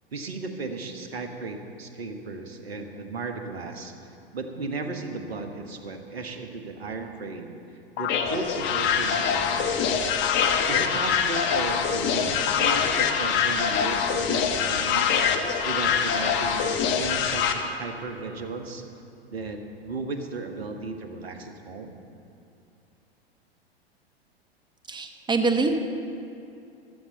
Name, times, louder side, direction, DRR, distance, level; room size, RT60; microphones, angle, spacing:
voice 1, 0.1-3.9 4.3-7.6 8.0-9.7 10.7-15.2 15.6-18.8 19.3-22.0, right 3 dB, 75° right, 5 dB, 1.5 m, -35 dB
sound 1, 8.0-17.5, left 7 dB, 35° left, 1.1 m, -24 dB
voice 2, 24.9-25.8, right 3 dB, 15° right, 5 dB, 1.2 m, -24 dB
14.5 x 12.5 x 4.1 m, 2.6 s
figure-of-eight pair, 90°, 31 cm